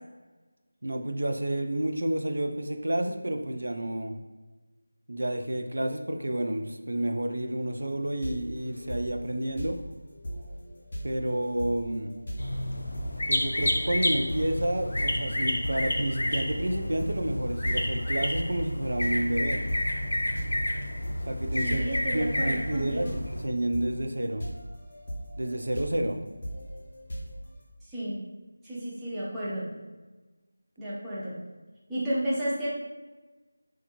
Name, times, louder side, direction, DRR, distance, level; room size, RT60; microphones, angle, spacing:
voice 1, 0.8-4.2 5.1-9.8 11.0-12.1 13.3-19.7 21.3-21.8 22.1-24.5 25.4-26.2, right 1 dB, 80° right, 4 dB, 0.3 m, -30 dB
sound 1, 7.7-27.6, equal, 30° left, 0.7 m, -39 dB
sound 2, 12.4-23.5, left 1 dB, 80° left, 0.4 m, -30 dB
voice 2, 21.5-23.1 27.8-28.2 28.6-29.7 30.8-31.4 31.9-32.7, right 1 dB, 5° right, -11 dB, 0.4 m, -32 dB
2.5 x 2.2 x 2.9 m, 1.2 s
figure-of-eight pair, 175°, 0 cm